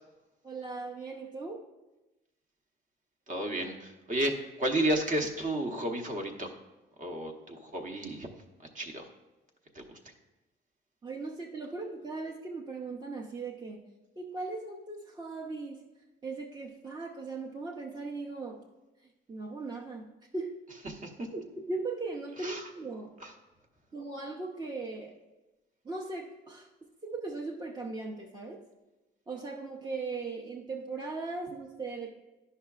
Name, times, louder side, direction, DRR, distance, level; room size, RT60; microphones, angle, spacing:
voice 1, 0.4-1.7 11.0-13.8 14.2-15.8 16.2-18.6 19.0-20.6 21.3-23.1 23.9-25.2 25.8-26.7 27.0-28.6 29.3-32.1, right 3 dB, 20° right, 0 dB, 0.6 m, -38 dB
voice 2, 3.3-6.5 7.0-8.3 8.6-9.1 9.7-10.1 20.8-21.3 22.4-22.7 23.2-23.3, right 1 dB, 40° right, 4 dB, 0.9 m, -33 dB
10.0 x 5.6 x 2.4 m, 1.1 s
cardioid pair, 90°, 20 cm